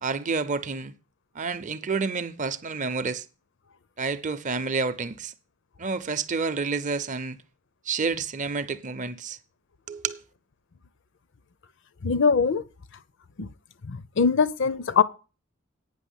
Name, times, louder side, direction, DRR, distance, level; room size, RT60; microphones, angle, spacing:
voice 1, 0.0-0.9 1.3-3.3 4.0-5.3 5.8-7.4 7.8-9.4 9.9-10.2, right 4 dB, 35° right, 0.6 m, -29 dB
voice 2, 12.0-12.6 13.4-13.5 13.8-15.0, left 5 dB, 55° left, 0.6 m, -22 dB
9.0 x 6.0 x 8.1 m
head